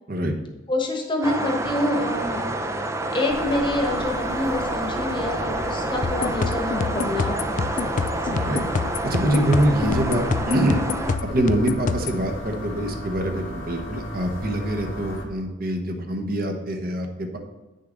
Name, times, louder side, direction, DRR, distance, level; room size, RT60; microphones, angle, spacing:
voice 1, 0.7-2.4 3.1-8.4 10.1-10.2, left 1 dB, 25° left, 2 dB, 1.2 m, -27 dB
sound 1, 1.2-11.2, right 2 dB, 15° right, 0.5 m, -29 dB
sound 2, 3.3-15.2, equal, 85° left, 1.6 m, -35 dB
sound 3, 6.0-12.2, left 5 dB, 40° left, 0.3 m, -27 dB
voice 2, 8.3-8.6 9.0-10.8 11.2-17.4, right 1 dB, 50° right, 4 dB, 1.0 m, -24 dB
9.3 x 6.6 x 3.9 m, 1.1 s
head